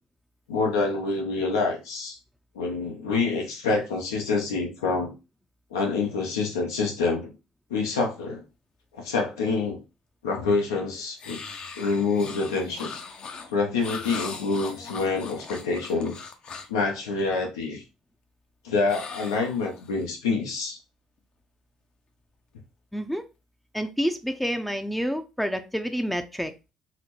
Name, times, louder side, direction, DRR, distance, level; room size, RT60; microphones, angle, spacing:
voice 1, 0.5-2.2 2.5-5.1 5.7-7.3 7.7-8.4 9.0-9.8 10.2-11.4 11.8-12.9 13.5-16.2 16.7-17.8 18.6-20.8, left 4 dB, 85° left, 0 dB, 0.8 m, -26 dB
sound 1, 11.2-16.8 18.9-20.0, left 5 dB, 50° left, 0.6 m, -39 dB
voice 2, 22.9-23.3 23.7-26.5, equal, 5° left, 7 dB, 0.5 m, -28 dB
4.1 x 2.1 x 3.0 m, 0.28 s
hypercardioid pair, 55°, 2 cm